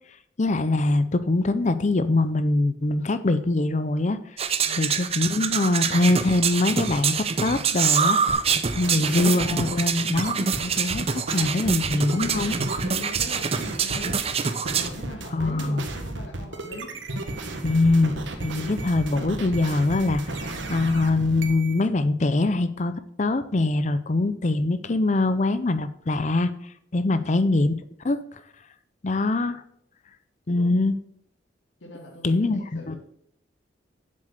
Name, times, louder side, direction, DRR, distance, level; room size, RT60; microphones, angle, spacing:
voice 1, 0.4-4.2 4.8-8.2 8.7-12.6 15.3-15.8 17.6-27.7 28.0-28.4 29.0-29.6 30.5-31.0 32.2-33.0, left 2 dB, 40° left, 12 dB, 0.5 m, -23 dB
sound 1, 4.4-14.9, right 6 dB, 35° right, 0.6 m, -26 dB
sound 2, 8.3-21.8, right 2 dB, 85° right, 1.5 m, -34 dB
voice 2, 12.8-14.2 14.7-16.9 27.1-27.4 30.5-30.8 31.8-33.0, left 1 dB, 80° left, 0 dB, 2.1 m, -41 dB
7.7 x 7.7 x 6.5 m, 0.69 s
head